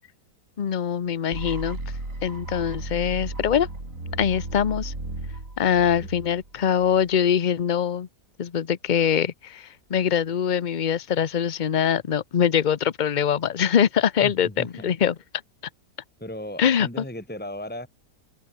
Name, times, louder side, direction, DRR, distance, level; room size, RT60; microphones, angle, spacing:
voice 1, 0.6-1.8 2.2-3.7 4.2-4.9 5.6-8.1 8.4-15.1 16.6-16.9, left 8 dB, 45° left, 0.6 m, -23 dB
sound 1, 1.3-7.2, right 2 dB, 50° right, 5.8 m, -35 dB
voice 2, 14.2-14.9 16.2-17.9, left 1 dB, 5° left, 2.4 m, -36 dB
open air
omnidirectional pair, 1.8 m